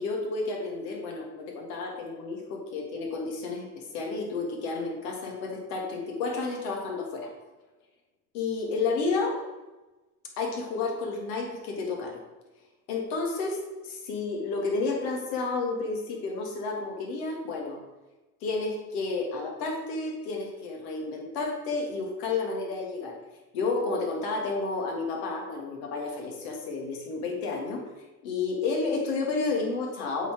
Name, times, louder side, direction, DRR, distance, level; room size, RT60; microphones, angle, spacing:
voice 1, 0.0-7.3 8.3-9.4 10.4-12.2 12.9-17.8 18.4-23.2 23.5-27.8 28.2-30.3, left 3 dB, 70° left, 1 dB, 1.9 m, -31 dB
7.9 x 4.2 x 4.5 m, 1.1 s
hypercardioid pair, 75°, 50 cm